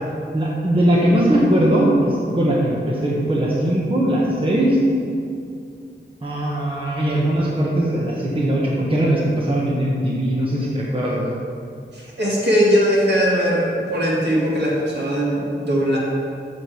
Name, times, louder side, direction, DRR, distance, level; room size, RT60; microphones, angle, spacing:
voice 1, 0.3-4.8 6.2-11.2, right 1 dB, 25° right, -5 dB, 1.3 m, -20 dB
voice 2, 11.9-16.0, equal, 60° right, -5 dB, 2.2 m, -20 dB
7.4 x 4.8 x 6.9 m, 2.4 s
wide cardioid pair, 75°, 19 cm